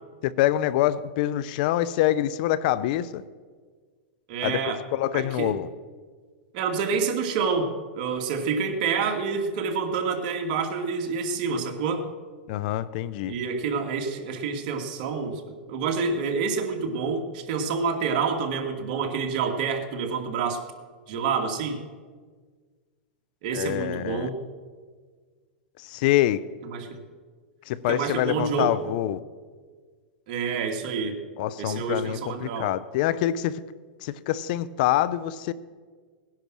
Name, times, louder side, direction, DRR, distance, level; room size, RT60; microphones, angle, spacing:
voice 1, 0.2-3.2 4.4-4.6 4.9-5.7 12.5-13.3 23.5-24.3 25.8-26.4 27.7-29.2 31.4-33.6 34.0-35.5, left 13 dB, 55° left, 18 dB, 0.7 m, -25 dB
voice 2, 4.3-4.8 5.1-5.6 6.5-12.0 13.3-20.6 21.1-21.8 23.4-24.4 26.6-27.0 27.9-28.8 30.3-31.2 31.6-32.7, right 5 dB, 55° right, 4 dB, 2.4 m, -28 dB
18.5 x 10.5 x 6.3 m, 1.6 s
hypercardioid pair, 130°, 5 cm